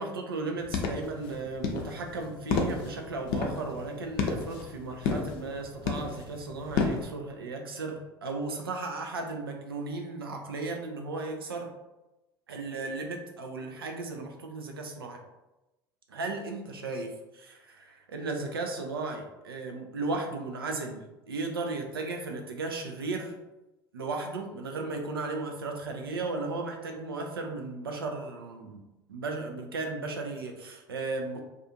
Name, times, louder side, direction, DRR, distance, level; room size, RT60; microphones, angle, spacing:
voice 1, 0.0-11.7 12.5-15.2 16.1-23.3 23.9-28.8 29.1-31.4, right 3 dB, 85° right, 3 dB, 0.4 m, -35 dB
sound 1, 0.6-7.0, left 4 dB, 60° left, 0.5 m, -32 dB
2.4 x 2.4 x 2.7 m, 1.0 s
hypercardioid pair, 70°, 12 cm